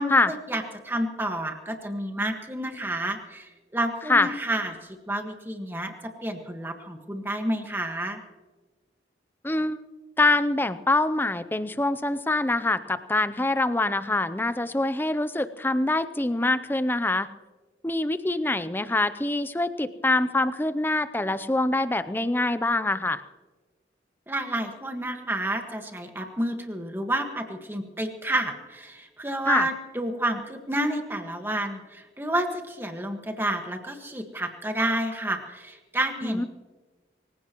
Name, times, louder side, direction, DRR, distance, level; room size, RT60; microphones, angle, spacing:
voice 1, 0.0-8.2 24.3-36.5, right 1 dB, 10° right, 4 dB, 1.6 m, -30 dB
voice 2, 9.4-9.8 10.2-17.3 17.8-23.2 29.5-29.7 36.2-36.5, left 2 dB, 10° left, 12 dB, 0.5 m, -24 dB
24.5 x 16.0 x 3.1 m, 1.3 s
head